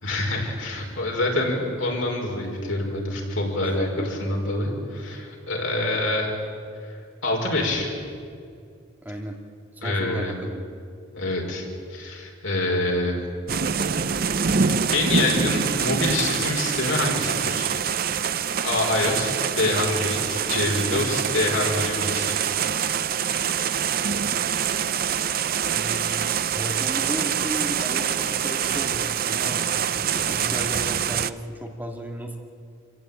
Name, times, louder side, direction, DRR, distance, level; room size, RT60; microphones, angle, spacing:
voice 1, 0.0-6.3 7.2-7.9 9.8-10.3 11.1-13.2 14.5-17.8 18.6-22.3, left 2 dB, 80° left, 0 dB, 5.2 m, -26 dB
voice 2, 3.6-4.1 9.0-9.4 9.7-10.6 25.6-26.2 26.5-29.6 30.0-32.4, equal, 10° right, 1 dB, 2.1 m, -34 dB
sound 1, 13.5-31.3, right 7 dB, 45° right, 0.6 m, -25 dB
27.0 x 15.5 x 9.1 m, 2.3 s
head